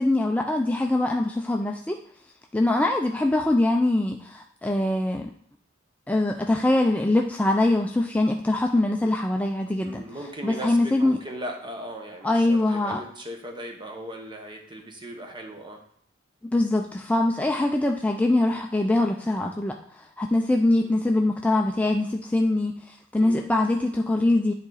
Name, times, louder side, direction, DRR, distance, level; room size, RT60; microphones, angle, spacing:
voice 1, 0.0-2.0 2.5-5.3 6.1-10.1 10.4-11.2 12.2-13.0 16.5-24.5, left 2 dB, 5° left, 2 dB, 0.3 m, -23 dB
voice 2, 9.8-15.8 20.8-20.9 23.2-23.5, equal, 25° right, 3 dB, 1.1 m, -38 dB
9.7 x 3.9 x 4.0 m, 0.65 s
head